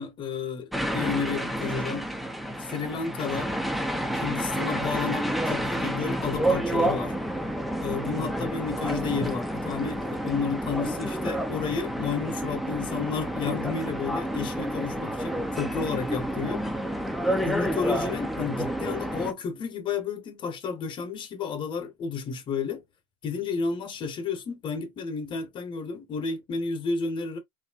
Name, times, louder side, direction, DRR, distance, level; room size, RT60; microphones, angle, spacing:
voice 1, 0.0-2.1 2.6-3.5 4.1-7.1 7.8-16.6 17.4-22.8 23.2-27.4, left 5 dB, 35° left, 1.0 m, -31 dB
sound 1, 0.7-19.3, right 1 dB, ahead, 0.4 m, -29 dB
3.1 x 2.7 x 2.4 m
supercardioid pair, 115°, 15 cm